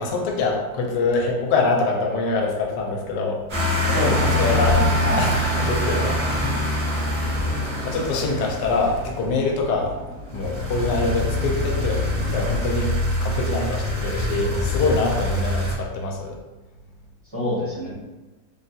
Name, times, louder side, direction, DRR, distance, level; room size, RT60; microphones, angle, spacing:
voice 1, 0.0-3.4 4.2-4.7 5.2-6.5 7.1-7.3 7.8-9.9 10.3-16.3, left 3 dB, 85° left, 1 dB, 1.2 m, -25 dB
sound 1, 3.5-9.4 10.3-15.7, left 1 dB, 45° right, 1.1 m, -24 dB
voice 2, 3.8-5.2 17.3-17.9, left 1 dB, 20° right, -11 dB, 0.9 m, -26 dB
sound 2, 4.1-12.5, equal, 70° right, 1.7 m, -34 dB
3.4 x 2.3 x 2.7 m, 1.1 s
omnidirectional pair, 1.8 m